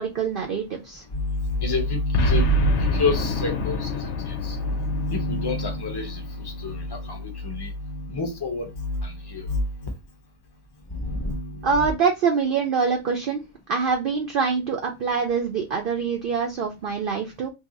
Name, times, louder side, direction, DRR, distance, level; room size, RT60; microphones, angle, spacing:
voice 1, 0.0-1.0 11.6-13.4 13.7-17.5, right 5 dB, 60° right, 0.7 m, -24 dB
voice 2, 1.1-9.6 10.9-11.9, left 2 dB, 25° left, 0.7 m, -27 dB
Boom, 2.1-6.5, equal, 70° left, 1.0 m, -26 dB
2.7 x 2.7 x 3.9 m
omnidirectional pair, 1.3 m